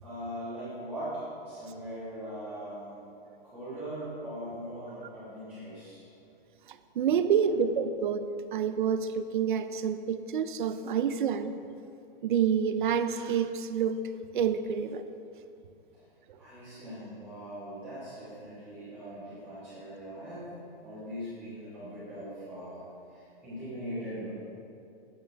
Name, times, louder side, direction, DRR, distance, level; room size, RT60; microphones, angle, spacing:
voice 1, 0.0-2.9 3.4-6.0 16.4-20.5 20.8-22.8 23.1-24.3, equal, 5° right, -15 dB, 1.5 m, -40 dB
voice 2, 6.7-8.3 8.5-11.5 12.2-14.0 14.3-15.0, right 7 dB, 55° right, 11 dB, 0.4 m, -28 dB
8.6 x 6.2 x 3.4 m, 2.6 s
hypercardioid pair, 180°, 30 cm